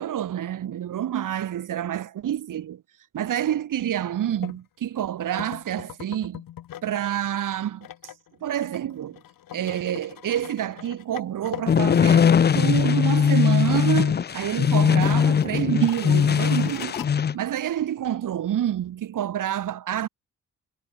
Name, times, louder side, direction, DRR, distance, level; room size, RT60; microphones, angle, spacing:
voice 1, 0.0-2.8 3.1-6.4 6.8-7.9 8.4-9.2 9.5-17.0 17.3-20.1, right 11 dB, 70° right, 5.3 m, -27 dB
sound 1, 4.4-4.6 5.4-7.0 7.3-12.6 12.9-13.0 13.4-13.9 14.2-14.3 14.9-17.1, left 12 dB, 85° left, 3.3 m, -42 dB
sound 2, 11.7-17.4, left 7 dB, 30° left, 0.7 m, -20 dB
wide cardioid pair, 175°, 33 cm